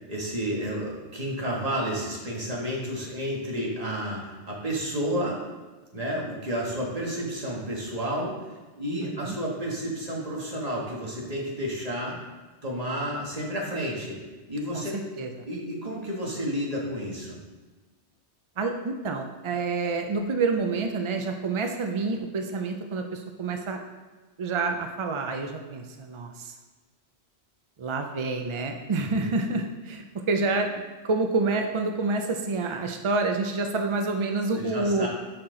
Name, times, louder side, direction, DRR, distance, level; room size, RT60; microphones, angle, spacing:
voice 1, 0.1-5.4 5.9-8.3 8.8-12.2 12.6-14.2 14.5-15.0 15.5-17.4 29.1-29.3 34.6-35.1, equal, 35° right, -3 dB, 1.5 m, -31 dB
voice 2, 18.6-23.8 24.4-26.5 27.8-35.1, right 3 dB, 50° right, 4 dB, 0.3 m, -28 dB
6.6 x 5.7 x 3.8 m, 1.3 s
omnidirectional pair, 1.2 m